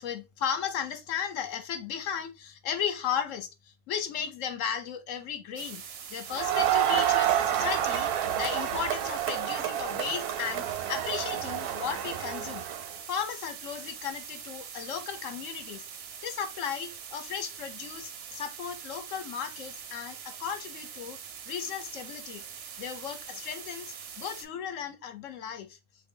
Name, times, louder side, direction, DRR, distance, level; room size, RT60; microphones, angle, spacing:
voice 1, 0.0-5.8 6.1-12.6 13.1-15.9 16.2-21.2 21.5-22.4 22.8-25.8, left 8 dB, 65° left, 1.0 m, -35 dB
sound 1, 5.6-24.4, right 7 dB, 60° right, 0.7 m, -44 dB
Crowd, 6.3-12.9, right 11 dB, 85° right, 1.1 m, -29 dB
3.3 x 2.6 x 3.6 m
omnidirectional pair, 1.6 m